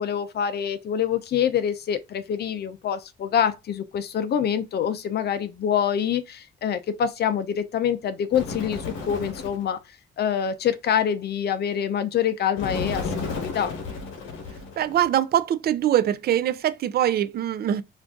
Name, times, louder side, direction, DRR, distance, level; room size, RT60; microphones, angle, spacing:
voice 1, 0.0-13.7, left 8 dB, 55° left, 0.5 m, -26 dB
Bird, 8.3-9.7 12.6-15.1, left 4 dB, 80° left, 1.0 m, -32 dB
voice 2, 14.8-17.8, right 11 dB, 55° right, 0.4 m, -23 dB
2.5 x 2.5 x 3.5 m
cardioid pair, 90°, 20 cm